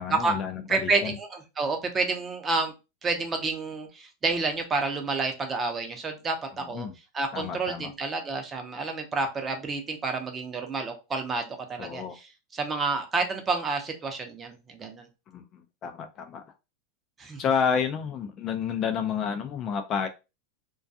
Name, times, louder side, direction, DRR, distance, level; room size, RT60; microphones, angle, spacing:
voice 1, 0.0-1.2 6.6-6.9 7.3-7.9 11.8-12.2 15.3-16.4 17.4-20.1, left 7 dB, 35° left, 7 dB, 0.3 m, -30 dB
voice 2, 0.7-2.7 3.0-6.9 7.1-15.1 17.2-17.4, right 3 dB, 20° right, 5 dB, 0.6 m, -29 dB
2.2 x 2.2 x 2.6 m, 0.28 s
supercardioid pair, 135°, 0 cm